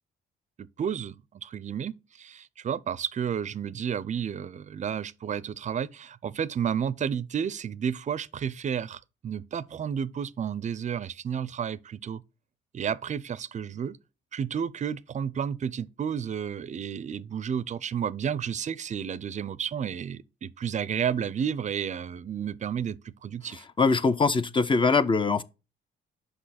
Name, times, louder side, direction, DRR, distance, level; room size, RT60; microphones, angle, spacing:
voice 1, 0.6-12.2 12.7-14.0 14.3-23.6, right 8 dB, 40° right, 0.4 m, -31 dB
voice 2, 23.5-25.4, left 4 dB, 25° left, 0.5 m, -23 dB
6.3 x 5.3 x 4.1 m
cardioid pair, 90°, 20 cm